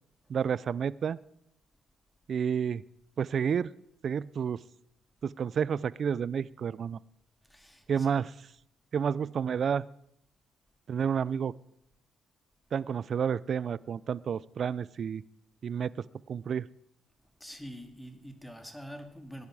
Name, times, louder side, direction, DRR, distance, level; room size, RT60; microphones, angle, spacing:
voice 1, 0.3-1.2 2.3-2.8 3.2-3.7 4.0-4.6 5.2-7.0 7.9-8.5 8.9-9.8 10.9-11.5 12.7-15.2 15.6-16.7, right 7 dB, 55° right, 0.5 m, -30 dB
voice 2, 7.4-8.1 17.4-19.5, equal, 5° left, 2.2 m, -45 dB
19.5 x 10.5 x 4.8 m
cardioid pair, 90°, 0 cm